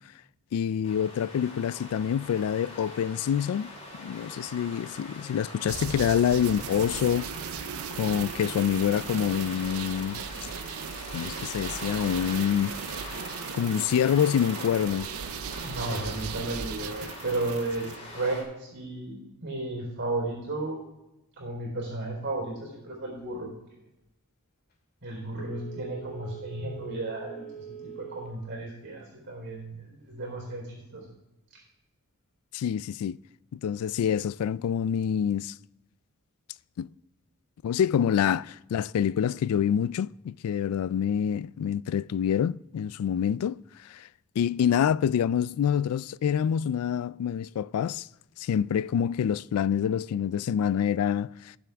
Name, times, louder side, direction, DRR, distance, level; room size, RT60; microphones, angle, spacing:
voice 1, 0.5-3.7 4.0-7.3 8.0-10.2 11.1-13.2 13.5-15.1 32.5-33.2 33.5-35.5 36.8-36.9 37.6-44.1 44.4-48.1 48.4-51.6, left 8 dB, 75° left, 0.3 m, -26 dB
sound 1, 0.8-18.4, left 2 dB, 30° left, 3.2 m, -42 dB
sound 2, 5.7-18.0, right 8 dB, 70° right, 0.5 m, -38 dB
voice 2, 15.6-20.8 21.4-23.5 25.0-31.1 31.5-31.6, right 2 dB, 55° right, 3.9 m, -34 dB
Telephone, 25.4-28.4 28.8-28.9, right 7 dB, 45° left, 2.2 m, -43 dB
18.5 x 7.3 x 3.4 m
head